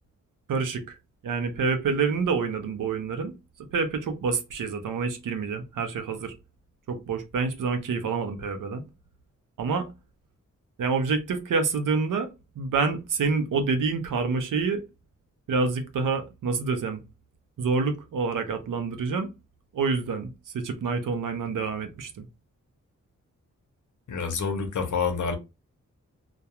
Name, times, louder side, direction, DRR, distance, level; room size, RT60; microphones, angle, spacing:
voice 1, 0.5-1.0 1.2-3.3 3.7-6.3 6.9-8.8 9.6-9.9 10.8-12.3 12.6-14.8 15.5-17.0 17.6-19.3 19.7-22.2, right 4 dB, 90° right, 0.6 m, -27 dB
voice 2, 24.1-25.4, left 5 dB, 70° left, 0.7 m, -27 dB
2.3 x 2.2 x 2.8 m
wide cardioid pair, 145°, 31 cm